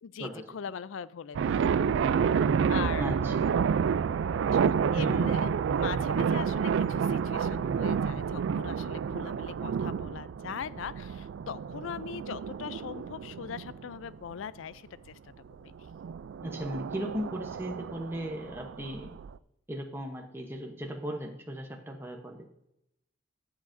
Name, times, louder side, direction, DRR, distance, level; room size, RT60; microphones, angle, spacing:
voice 1, 0.0-1.7 2.7-3.1 4.5-4.6 4.9-15.2 15.6-15.7, left 7 dB, 85° left, 17 dB, 0.4 m, -40 dB
sound 1, 1.3-14.3 15.8-19.3, right 6 dB, 70° right, 0.3 m, -29 dB
voice 2, 3.0-3.5 5.0-5.3 16.4-19.1 19.7-22.4, equal, 10° right, 2 dB, 0.9 m, -37 dB
13.0 x 7.5 x 2.6 m, 0.81 s
head